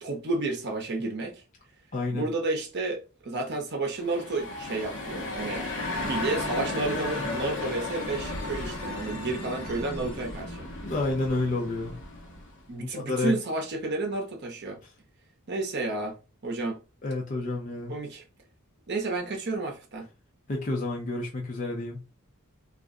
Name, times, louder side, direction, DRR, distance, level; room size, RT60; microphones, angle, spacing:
voice 1, 0.0-1.4 2.1-5.7 6.0-10.7 12.7-14.8 15.5-16.2 16.4-16.8 17.9-18.2 18.9-20.1, right 2 dB, 50° right, 0.8 m, -31 dB
voice 2, 1.9-2.3 10.8-12.0 12.8-13.4 17.0-17.9 20.5-22.0, left 2 dB, 35° left, 0.5 m, -30 dB
sound 1, 3.9-12.6, left 2 dB, 55° left, 0.9 m, -34 dB
2.4 x 2.1 x 3.6 m
head